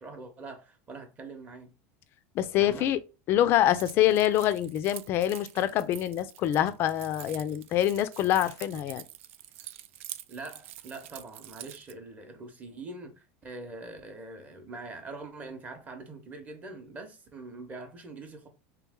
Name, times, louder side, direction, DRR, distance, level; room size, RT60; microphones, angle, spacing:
voice 1, 0.0-1.7 2.6-2.9 10.3-18.5, right 3 dB, 20° right, 0.8 m, -43 dB
voice 2, 2.4-3.0 3.3-9.0, left 12 dB, 35° left, 0.4 m, -25 dB
Keys jangling, 3.8-11.9, right 13 dB, 85° right, 0.4 m, -46 dB
3.3 x 3.0 x 3.6 m
supercardioid pair, 160°, 7 cm